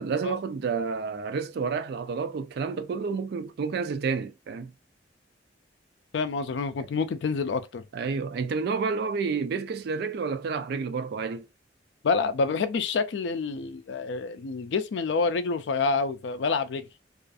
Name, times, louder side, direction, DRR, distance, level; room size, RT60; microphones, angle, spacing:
voice 1, 0.0-4.7 6.8-6.9 7.9-11.5, right 5 dB, 60° right, 0.3 m, -30 dB
voice 2, 6.1-7.8 12.0-16.9, left 4 dB, 80° left, 0.4 m, -27 dB
2.4 x 2.4 x 2.4 m
head